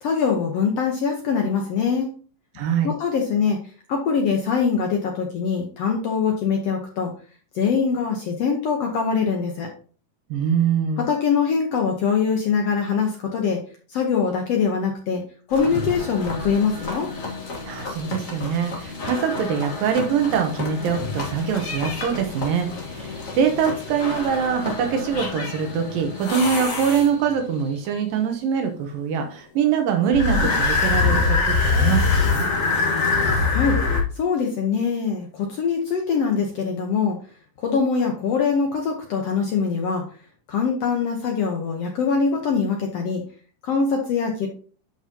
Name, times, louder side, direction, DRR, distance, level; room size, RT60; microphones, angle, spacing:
voice 1, 0.0-2.1 2.8-3.6 3.9-7.1 7.5-9.7 11.0-13.6 13.9-15.2 15.5-17.1 33.5-37.2 37.6-40.0 40.5-43.2 43.6-44.5, left 5 dB, 70° left, 2 dB, 1.6 m, -23 dB
voice 2, 2.5-2.9 10.3-11.0 17.7-32.5, right 7 dB, 80° right, 5 dB, 2.7 m, -23 dB
sound 1, 15.5-27.4 30.1-34.0, left 4 dB, 50° left, 0.9 m, -25 dB
11.5 x 5.0 x 2.8 m, 0.41 s
omnidirectional pair, 4.0 m